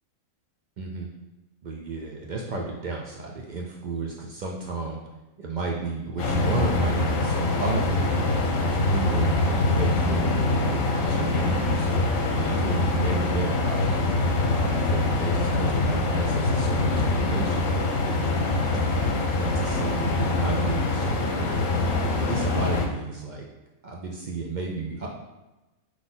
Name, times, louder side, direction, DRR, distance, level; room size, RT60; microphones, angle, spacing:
voice 1, 0.8-1.1 1.6-5.0 5.4-14.0 14.6-17.6 18.2-19.1 19.3-21.7 22.2-23.5 23.8-25.1, right 3 dB, 75° right, -1 dB, 0.4 m, -33 dB
sound 1, 6.2-22.9, left 2 dB, 75° left, 1.0 m, -24 dB
3.9 x 3.1 x 3.8 m, 1.1 s
omnidirectional pair, 1.4 m